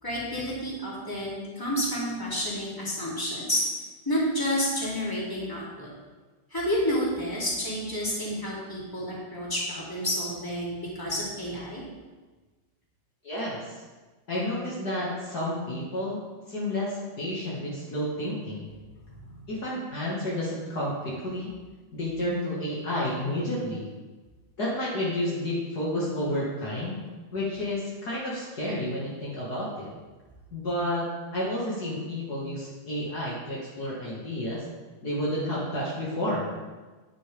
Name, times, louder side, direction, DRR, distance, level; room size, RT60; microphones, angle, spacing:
voice 1, 0.0-3.6 4.0-5.9 6.5-11.8, equal, 5° left, -7 dB, 2.2 m, -30 dB
voice 2, 13.2-13.8 14.3-16.2 16.5-18.7 19.5-21.5 21.9-23.9 24.6-27.0 27.3-29.9 30.5-31.1 31.3-34.6 35.0-36.5, left 1 dB, 80° left, -7 dB, 0.8 m, -30 dB
12.0 x 10.0 x 3.6 m, 1.3 s
omnidirectional pair, 5.4 m